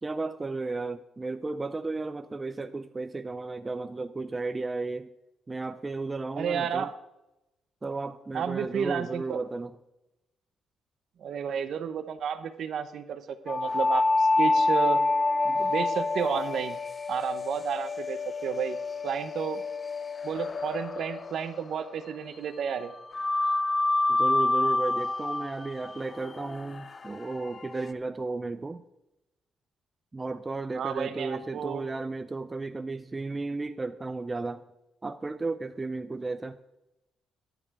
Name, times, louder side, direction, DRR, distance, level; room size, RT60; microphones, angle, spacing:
voice 1, 0.0-5.1 5.5-6.9 7.8-9.7 24.1-28.8 30.1-34.6 35.0-36.6, right 3 dB, 25° right, 10 dB, 0.5 m, -34 dB
voice 2, 6.4-6.9 8.3-9.4 11.2-15.0 15.4-16.8 17.1-18.8 19.0-19.6 20.2-22.9 30.7-31.8, right 8 dB, 65° right, 10 dB, 0.8 m, -32 dB
sound 1, 13.5-22.3 23.1-27.9, left 2 dB, 35° left, 0.5 m, -28 dB
11.0 x 6.9 x 4.8 m, 0.94 s
cardioid pair, 90°, 0 cm